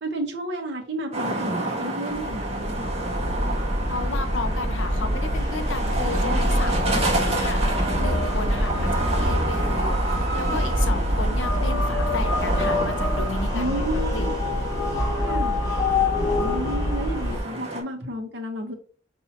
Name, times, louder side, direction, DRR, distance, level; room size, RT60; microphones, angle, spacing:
voice 1, 0.0-2.8 13.5-14.3 15.2-15.6 16.4-18.7, right 1 dB, 60° right, 1 dB, 1.1 m, -31 dB
sound 1, 1.1-17.8, right 2 dB, 35° right, 1.3 m, -30 dB
sound 2, 2.2-17.4, left 1 dB, 20° left, 1.3 m, -25 dB
voice 2, 3.9-14.3, left 3 dB, 85° left, 8 dB, 0.6 m, -33 dB
5.6 x 2.7 x 2.9 m, 0.41 s
head